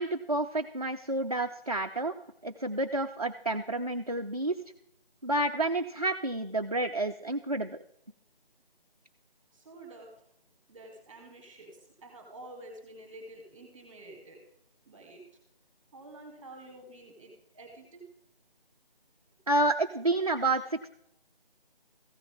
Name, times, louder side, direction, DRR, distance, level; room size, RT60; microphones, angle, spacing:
voice 1, 0.0-2.1 2.4-4.6 5.2-7.8 19.5-20.9, right 2 dB, 40° right, 4 dB, 0.4 m, -29 dB
voice 2, 9.5-10.3 10.7-14.4 14.8-15.2 15.9-18.0, right 1 dB, 10° right, 2 dB, 2.2 m, -49 dB
15.0 x 6.6 x 3.5 m, 0.73 s
figure-of-eight pair, 165°, 30 cm